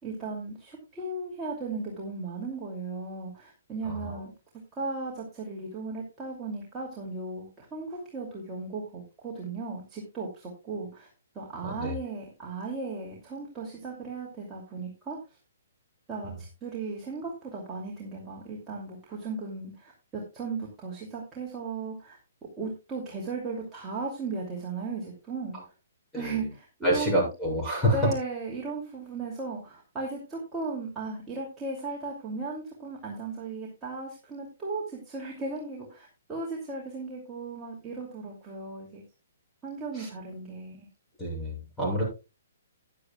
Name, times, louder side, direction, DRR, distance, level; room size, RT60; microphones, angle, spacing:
voice 1, 0.0-4.3 4.7-11.1 11.3-15.4 16.1-22.2 22.6-25.7 26.1-27.3 27.9-39.0 39.6-40.9, right 3 dB, 15° right, -4 dB, 2.7 m, -36 dB
voice 2, 3.8-4.2 11.6-12.0 26.1-26.4 26.8-28.0 39.9-40.1 41.2-42.0, equal, 5° left, -3 dB, 7.0 m, -28 dB
14.5 x 10.5 x 2.3 m, 0.28 s
figure-of-eight pair, 125°, 0 cm